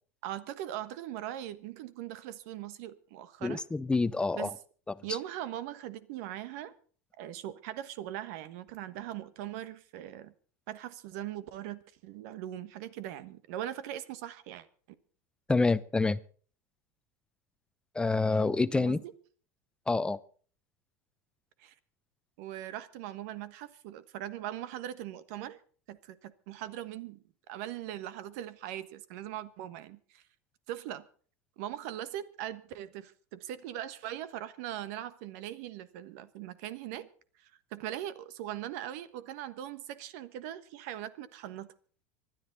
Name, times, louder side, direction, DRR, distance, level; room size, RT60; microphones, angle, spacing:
voice 1, 0.2-3.6 4.3-4.5 5.0-6.7 7.2-10.3 10.7-14.7 18.7-19.1 21.6-21.7 22.4-25.6 25.9-27.2 27.5-30.2 30.7-31.0 31.6-37.1 37.4-41.7, right 12 dB, 65° right, 1.3 m, -40 dB
voice 2, 3.4-4.5 4.9-5.0 15.5-16.2 17.9-19.0 19.9-20.2, left 3 dB, 10° left, 0.7 m, -27 dB
25.5 x 10.5 x 4.1 m
hypercardioid pair, 100°, 9 cm